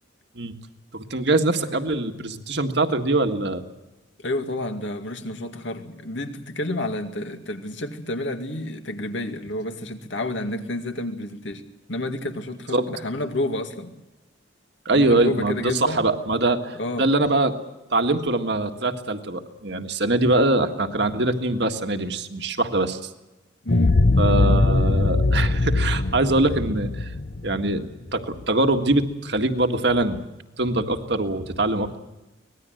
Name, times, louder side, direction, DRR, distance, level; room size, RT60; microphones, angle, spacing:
voice 1, 0.9-3.6 12.7-12.9 14.8-17.6 17.9-23.1 24.2-27.1 27.4-30.2 30.6-32.0, right 2 dB, 60° right, 1.8 m, -23 dB
voice 2, 4.2-11.6 11.9-13.9 14.9-16.0 16.8-17.1 23.6-24.0, left 1 dB, 75° left, 2.3 m, -30 dB
sound 1, 23.7-28.4, left 2 dB, 50° left, 0.7 m, -21 dB
25.0 x 19.5 x 7.9 m
head